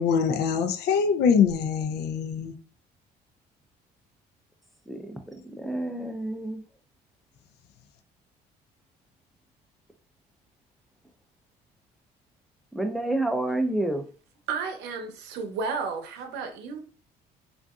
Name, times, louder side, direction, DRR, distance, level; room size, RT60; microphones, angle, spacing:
voice 1, 0.0-2.6, left 6 dB, 75° left, 0.5 m, -23 dB
voice 2, 4.9-5.2 5.4-6.6 12.7-14.0, right 1 dB, ahead, 0.5 m, -29 dB
voice 3, 14.5-16.8, right 5 dB, 85° right, 0.7 m, -32 dB
3.7 x 2.5 x 2.4 m
cardioid pair, 110°, 17 cm